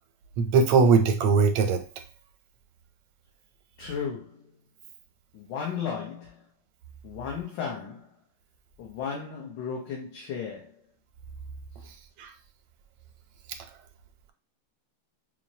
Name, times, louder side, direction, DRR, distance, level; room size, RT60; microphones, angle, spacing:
voice 1, 0.4-1.8 12.2-12.3, right 5 dB, 85° right, 1.5 m, -20 dB
voice 2, 3.8-4.5 5.3-6.4 7.0-8.1 8.8-10.7, left 6 dB, 65° left, 1.3 m, -35 dB
6.0 x 2.1 x 2.7 m
omnidirectional pair, 2.3 m